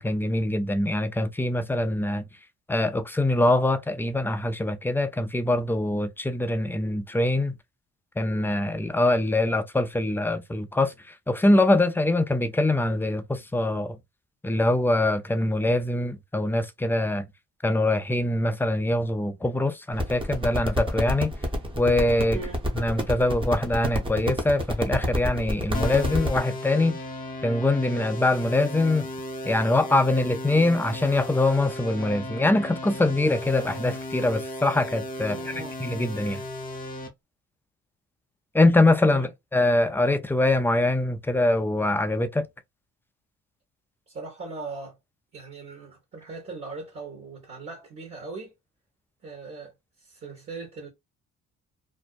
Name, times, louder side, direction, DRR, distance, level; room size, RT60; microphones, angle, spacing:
voice 1, 0.0-2.2 2.7-7.5 8.2-10.9 11.3-14.0 14.4-17.3 17.6-21.3 21.8-22.4 22.7-26.9 27.4-29.1 29.4-35.4 35.8-36.4 38.5-42.5, left 2 dB, 5° left, 0.3 m, -23 dB
sound 1, 19.9-26.4, equal, 15° right, 0.8 m, -28 dB
sound 2, 25.7-37.1, left 1 dB, 30° left, 0.7 m, -36 dB
voice 2, 35.3-35.7 39.1-39.3 44.1-45.0 45.3-48.5 49.2-50.9, right 4 dB, 45° right, 1.1 m, -39 dB
2.5 x 2.1 x 2.4 m
cardioid pair, 90°, 30 cm